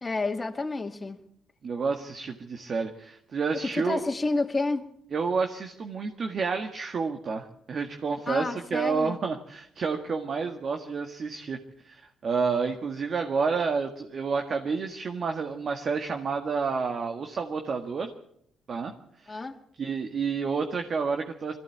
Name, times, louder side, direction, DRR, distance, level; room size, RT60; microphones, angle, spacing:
voice 1, 0.0-1.2 3.7-4.9 8.3-9.2 19.3-19.6, left 3 dB, 25° left, 2.3 m, -29 dB
voice 2, 1.6-4.0 5.1-11.6 11.8-18.1 18.7-18.9 19.2-19.3 19.8-21.6, right 5 dB, 50° right, 1.8 m, -29 dB
22.0 x 15.0 x 8.6 m
cardioid pair, 90°, 0 cm